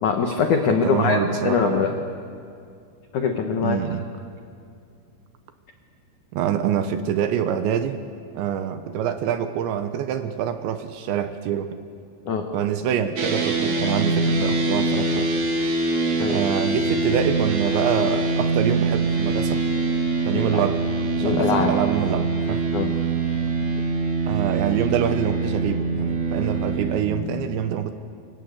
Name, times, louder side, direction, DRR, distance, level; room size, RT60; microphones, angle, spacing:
voice 1, 0.0-1.2 1.4-1.9 3.1-3.8 12.3-12.5 16.2-16.4 20.3-20.6 21.2-21.7 22.7-22.9, left 6 dB, 85° left, 4 dB, 1.7 m, -22 dB
voice 2, 0.7-1.9 3.6-4.0 6.3-8.0 8.3-11.8 12.5-15.3 16.3-19.6 20.3-20.8 21.2-22.7 24.3-27.9, right 9 dB, 75° right, 9 dB, 2.9 m, -25 dB
sound 1, 13.2-27.0, right 3 dB, 45° right, 2.1 m, -24 dB
28.5 x 24.0 x 8.3 m, 2.4 s
omnidirectional pair, 5.9 m